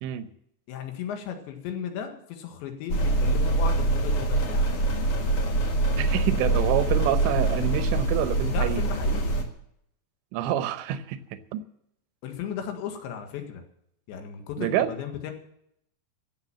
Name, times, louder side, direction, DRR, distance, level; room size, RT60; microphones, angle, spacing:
voice 1, 0.7-4.8 8.5-9.4 12.2-13.6 14.1-15.3, left 8 dB, 80° left, 5 dB, 4.0 m, -35 dB
sound 1, 2.9-9.4, right 2 dB, 50° left, 1.7 m, -24 dB
voice 2, 5.9-8.8 10.3-11.2 11.5-11.6 14.6-14.9, right 11 dB, 85° right, 11 dB, 3.2 m, -27 dB
15.0 x 8.7 x 7.6 m, 0.73 s
omnidirectional pair, 5.1 m